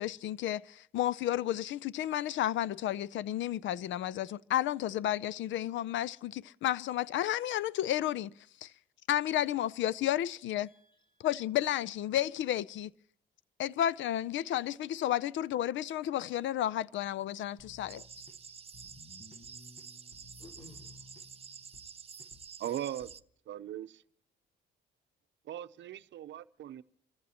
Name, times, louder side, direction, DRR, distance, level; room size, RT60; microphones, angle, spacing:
voice 1, 0.0-8.3 8.6-8.7 9.1-10.7 11.2-12.9 13.6-18.0, left 12 dB, 75° left, 0.5 m, -32 dB
voice 2, 10.6-11.3 17.5-17.7 20.4-21.7, left 2 dB, 25° left, 4.5 m, -58 dB
sound 1, 17.6-23.2, left 3 dB, 45° left, 1.5 m, -57 dB
sound 2, 17.9-23.2, right 6 dB, 30° right, 0.7 m, -49 dB
voice 3, 22.6-23.1 23.5-24.0 25.4-26.8, right 11 dB, 65° right, 0.7 m, -39 dB
29.0 x 15.0 x 2.9 m
cardioid pair, 90°, 20 cm